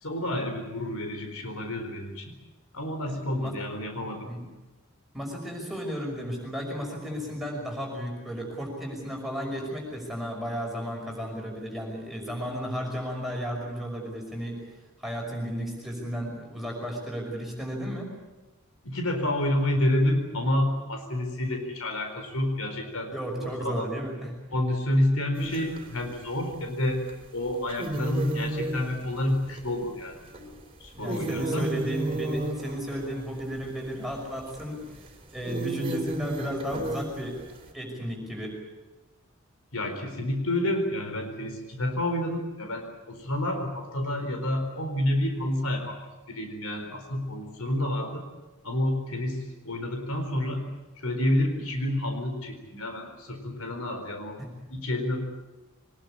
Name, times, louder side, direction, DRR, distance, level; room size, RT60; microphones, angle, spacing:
voice 1, 0.0-2.3 2.7-4.3 18.8-23.1 23.4-23.8 24.5-27.0 27.3-30.5 30.8-31.7 39.7-46.0 46.3-48.2 48.6-50.6 51.0-54.4 54.7-55.2, left 1 dB, 80° left, 4 dB, 4.4 m, -29 dB
voice 2, 3.1-3.6 4.3-4.4 5.1-14.6 15.0-18.1 23.1-24.3 30.9-34.8 35.3-37.4 37.7-38.6 54.4-54.5, equal, ahead, -1 dB, 5.7 m, -34 dB
sound 1, 25.4-25.9 27.1-27.2 27.7-30.5 30.8-33.8 34.5-34.6 35.0-35.1 35.4-37.6, right 1 dB, 25° right, 3.2 m, -33 dB
23.5 x 20.5 x 8.7 m, 1.1 s
head